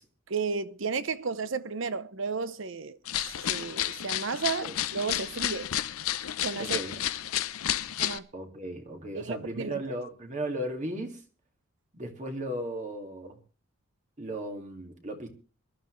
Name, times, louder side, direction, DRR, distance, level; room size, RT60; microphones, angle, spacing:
voice 1, 0.3-5.7 6.4-6.8 8.0-8.3 9.1-9.8, right 5 dB, 60° right, 0.7 m, -33 dB
sound 1, 3.0-8.2, left 12 dB, 80° left, 0.7 m, -31 dB
voice 2, 6.6-7.0 8.3-11.2 11.9-13.4 14.2-15.3, right 1 dB, 35° right, 2.1 m, -36 dB
22.5 x 12.0 x 3.2 m
head